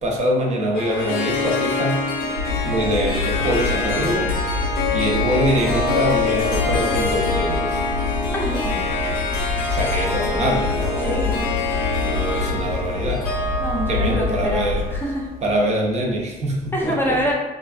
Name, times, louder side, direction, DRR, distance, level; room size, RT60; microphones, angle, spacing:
voice 1, 0.0-2.0 2.7-4.3 4.9-7.8 9.7-11.2 12.0-13.3 13.9-14.8 15.4-17.2, right 1 dB, 40° right, -1 dB, 0.5 m, -24 dB
Harp, 0.7-15.2, left 3 dB, 60° left, 0.6 m, -25 dB
sound 1, 2.3-15.0, left 3 dB, 80° right, 1.1 m, -27 dB
voice 2, 8.3-8.8 11.0-11.4 13.6-15.3 16.7-17.3, equal, 10° left, -3 dB, 0.5 m, -25 dB
2.4 x 2.4 x 2.3 m, 1.2 s
cardioid pair, 110°, 17 cm